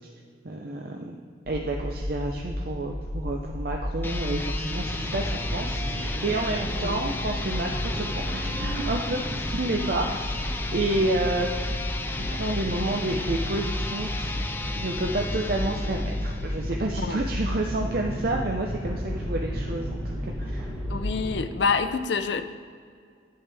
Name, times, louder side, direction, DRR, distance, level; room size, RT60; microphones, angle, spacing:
voice 1, 0.4-1.2 1.5-11.5 12.2-14.3 14.8-20.7, right 2 dB, 55° right, 1 dB, 0.6 m, -30 dB
sound 1, 1.5-21.3, left 1 dB, 35° left, 0.9 m, -33 dB
sound 2, 3.9-16.7, left 2 dB, 10° left, 0.4 m, -34 dB
sound 3, 4.8-21.5, equal, 20° right, 2.2 m, -37 dB
voice 2, 20.9-22.4, left 5 dB, 80° left, 10 dB, 0.5 m, -27 dB
10.0 x 8.5 x 3.4 m, 2.1 s
head